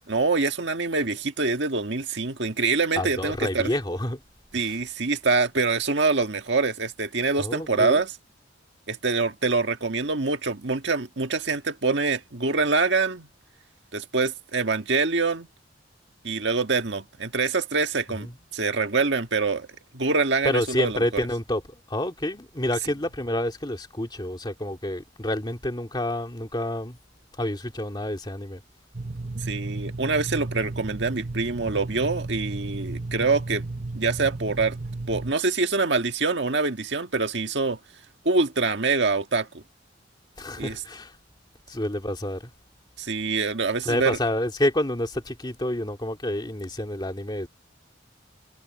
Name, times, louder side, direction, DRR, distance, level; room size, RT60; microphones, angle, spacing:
voice 1, 0.1-3.7 4.5-8.1 8.9-13.3 13.9-15.5 16.2-19.7 19.9-21.0 29.5-33.6 33.9-34.8 35.1-37.8 38.3-39.6 40.6-40.8 43.0-44.2, right 4 dB, 65° right, 1.8 m, -25 dB
voice 2, 3.0-4.2 4.5-4.8 7.4-8.0 18.1-18.4 20.4-27.0 27.4-28.6 40.4-41.2 41.7-42.5 43.8-47.5, left 1 dB, 25° left, 2.2 m, -28 dB
sound 1, 28.9-35.3, right 2 dB, 40° right, 0.9 m, -33 dB
head